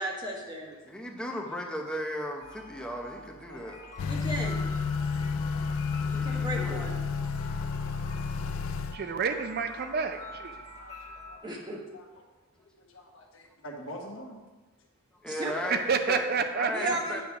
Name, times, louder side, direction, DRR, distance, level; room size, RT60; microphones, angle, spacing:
voice 1, 0.0-0.7 4.1-4.6 6.0-7.0 11.4-11.8 15.2-15.8 16.7-17.2, right 1 dB, 20° right, -1 dB, 1.2 m, -35 dB
voice 2, 0.8-3.8 6.1-6.9 7.4-7.5 15.2-16.3 16.5-17.2, equal, 5° left, 0 dB, 0.8 m, -36 dB
sound 1, 2.4-11.4, left 2 dB, 20° left, 2.1 m, -47 dB
Motor vehicle (road) / Accelerating revving vroom, 4.0-9.0, left 5 dB, 90° left, 0.4 m, -31 dB
voice 3, 4.0-4.5 4.9-5.7 6.0-6.4 7.2-8.2 8.5-8.6 9.0-9.1 10.8-11.5 11.9-12.0 12.8-14.4, equal, 70° left, 1 dB, 1.1 m, -48 dB
voice 4, 8.9-10.6 15.7-17.2, right 5 dB, 50° right, 8 dB, 0.4 m, -29 dB
8.3 x 3.5 x 5.8 m, 1.2 s
head